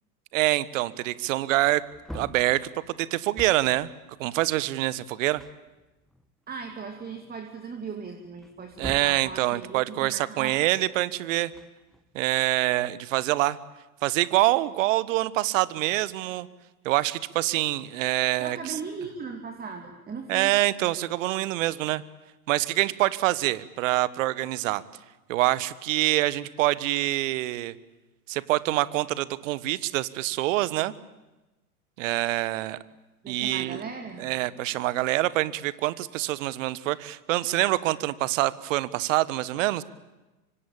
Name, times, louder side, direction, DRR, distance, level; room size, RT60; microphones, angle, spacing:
voice 1, 0.3-1.8 2.1-2.7 3.0-3.9 4.2-5.4 8.8-11.5 12.1-13.6 14.0-16.5 16.8-18.8 20.3-22.0 22.5-24.8 25.3-27.7 28.3-30.9 32.0-32.8 33.3-33.8 34.2-39.8, right 16 dB, 60° right, 18 dB, 1.4 m, -25 dB
Wood, 1.2-1.3 1.5-3.8 4.9-5.0 5.4-6.5 7.0-7.1 8.4-9.3 11.3-12.3, left 1 dB, ahead, 1.5 m, -44 dB
voice 2, 6.5-10.6 18.4-20.5 33.2-34.7, right 5 dB, 20° right, 5 dB, 2.6 m, -38 dB
25.5 x 25.0 x 8.9 m, 1.0 s
hypercardioid pair, 100°, 44 cm